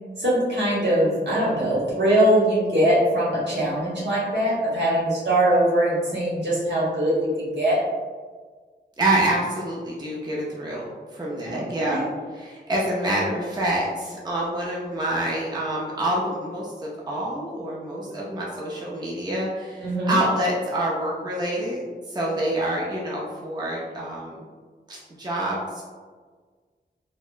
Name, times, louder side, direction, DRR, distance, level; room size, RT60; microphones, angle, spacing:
voice 1, 0.2-7.8 11.5-12.1 19.8-20.1, right 1 dB, 70° right, -7 dB, 1.3 m, -22 dB
voice 2, 9.0-12.0 12.3-24.4 24.9-25.8, right 1 dB, 20° right, -5 dB, 0.5 m, -27 dB
4.0 x 2.1 x 2.5 m, 1.5 s
wide cardioid pair, 85°, 19 cm